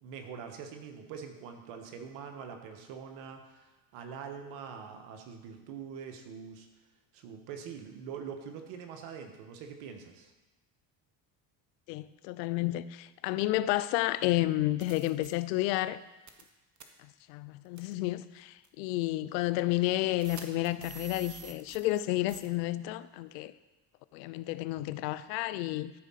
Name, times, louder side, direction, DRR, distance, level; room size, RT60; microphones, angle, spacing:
voice 1, 0.0-6.7 7.1-10.3, right 7 dB, 80° right, 1.5 m, -44 dB
voice 2, 11.9-16.0 17.3-23.5 24.1-25.9, left 16 dB, 90° left, 0.6 m, -31 dB
sound 1, 14.2-14.3 14.8-15.3 16.3-16.5 16.8-16.9 17.8-17.9 18.6-18.7 20.2-22.0 22.3-22.5, right 8 dB, 35° right, 1.3 m, -47 dB
13.5 x 4.7 x 5.7 m
supercardioid pair, 80°, 49 cm